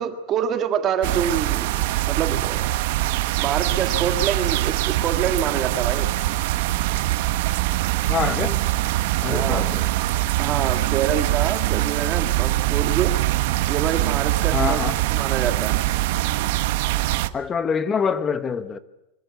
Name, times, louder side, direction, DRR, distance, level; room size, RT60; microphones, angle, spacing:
voice 1, 0.0-2.6 3.1-6.1 9.3-9.6 10.4-13.2 13.7-14.8 15.1-15.8, right 8 dB, 25° right, 1.6 m, -26 dB
sound 1, 1.0-17.3, right 16 dB, 55° right, 1.1 m, -23 dB
voice 2, 8.1-8.6 9.2-9.9 14.5-15.0 17.3-18.8, left 6 dB, 15° left, 1.1 m, -25 dB
24.5 x 24.5 x 8.1 m
supercardioid pair, 175°, 0 cm